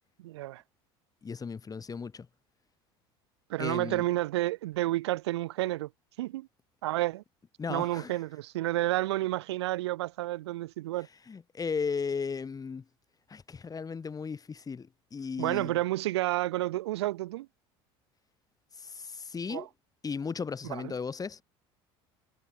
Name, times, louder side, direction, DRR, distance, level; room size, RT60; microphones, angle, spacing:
voice 1, 0.2-0.6 3.5-5.9 6.2-6.5 6.8-7.2 7.7-11.1 15.4-17.5 19.5-19.7 20.7-20.9, right 17 dB, 85° right, 0.6 m, -30 dB
voice 2, 1.2-2.3 3.6-4.1 7.6-8.2 11.3-12.8 13.3-15.7 18.7-19.7 20.0-21.4, left 5 dB, 25° left, 3.8 m, -36 dB
hypercardioid pair, 80°, 14 cm